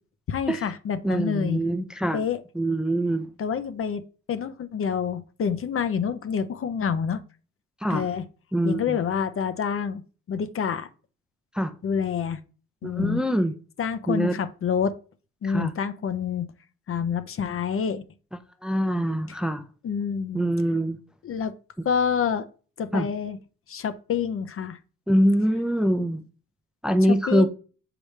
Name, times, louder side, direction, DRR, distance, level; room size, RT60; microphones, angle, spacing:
voice 1, 0.3-1.6 2.1-2.4 3.4-4.0 4.3-7.2 7.9-8.2 8.6-10.0 10.3-10.9 11.8-12.4 12.8-13.2 13.8-15.0 15.4-16.5 16.9-18.0 19.8-20.4 21.2-21.5 21.8-22.4 22.8-23.4 23.7-24.8 27.3-27.5, left 7 dB, 45° left, 0.7 m, -27 dB
voice 2, 1.0-2.2 2.6-3.3 7.8-8.1 8.5-9.0 11.5-11.7 12.8-13.5 14.1-14.4 15.4-15.7 18.6-19.6 20.3-21.0 22.9-23.1 25.1-26.2 26.8-27.5, equal, 5° right, 0.5 m, -23 dB
6.1 x 4.9 x 3.2 m
cardioid pair, 90°, 30 cm